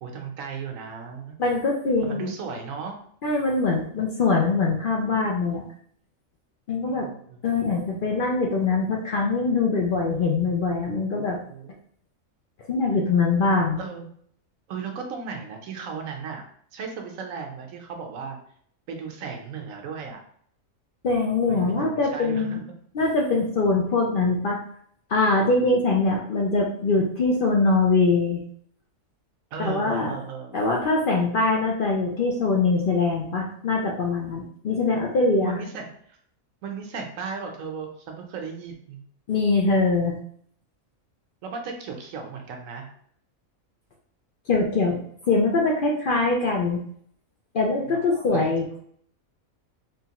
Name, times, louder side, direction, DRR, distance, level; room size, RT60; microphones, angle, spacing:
voice 1, 0.0-1.4 2.0-3.0 6.8-7.4 11.5-11.7 13.8-14.1 14.7-16.4 16.7-18.4 18.9-20.2 21.5-22.6 29.5-30.6 35.4-36.2 36.6-39.0 41.4-42.9 47.9-48.5, right 5 dB, 80° right, 3 dB, 1.1 m, -36 dB
voice 2, 1.4-2.3 3.2-5.6 6.7-7.1 7.4-11.4 12.7-13.8 21.0-22.6 22.9-24.6 25.1-28.4 29.6-30.2 30.5-35.6 39.3-40.1 44.5-45.0 45.3-46.8 47.5-48.8, left 3 dB, 60° left, -1 dB, 0.5 m, -23 dB
3.7 x 2.8 x 2.9 m, 0.63 s
omnidirectional pair, 1.4 m